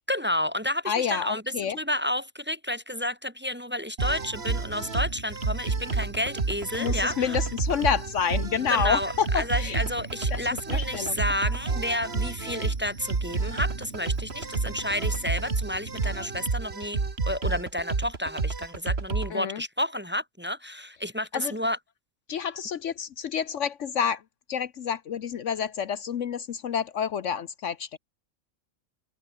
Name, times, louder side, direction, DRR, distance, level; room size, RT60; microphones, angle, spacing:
voice 1, 0.0-7.3 8.7-17.0 17.3-21.8, left 1 dB, 10° right, 1.5 m, -31 dB
voice 2, 0.9-1.8 6.8-9.8 10.3-11.2 19.3-19.6 21.3-21.5 22.3-24.2 24.5-28.0, left 7 dB, 65° left, 1.1 m, -29 dB
sound 1, 4.0-19.3, right 4 dB, 45° right, 2.4 m, -30 dB
omnidirectional pair, 1.5 m